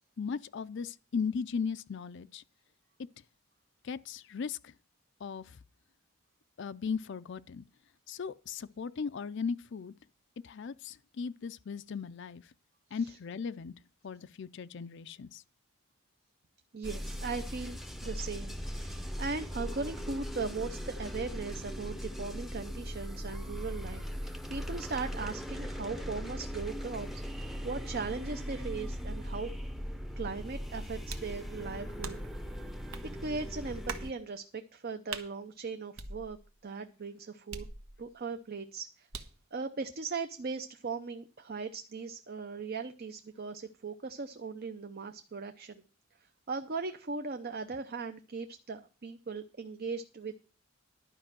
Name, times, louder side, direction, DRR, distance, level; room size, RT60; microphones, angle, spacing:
voice 1, 0.2-2.4 3.8-4.7 5.2-5.6 6.6-7.6 8.1-9.9 10.4-12.4 12.9-13.7 14.0-15.4, left 5 dB, 55° left, 0.4 m, -37 dB
voice 2, 16.7-29.5 30.2-32.2 33.2-36.4 36.6-37.7 38.0-39.1 39.5-45.8 46.5-50.3, right 4 dB, 45° right, 0.6 m, -39 dB
sound 1, 16.8-34.1, equal, ahead, 0.7 m, -39 dB
sound 2, 31.1-31.4 32.0-32.4 32.9-33.1 33.9-34.1 35.1-35.3 36.0-36.6 37.5-38.2 39.1-39.4, right 4 dB, 85° right, 1.2 m, -42 dB
12.0 x 5.3 x 7.5 m
head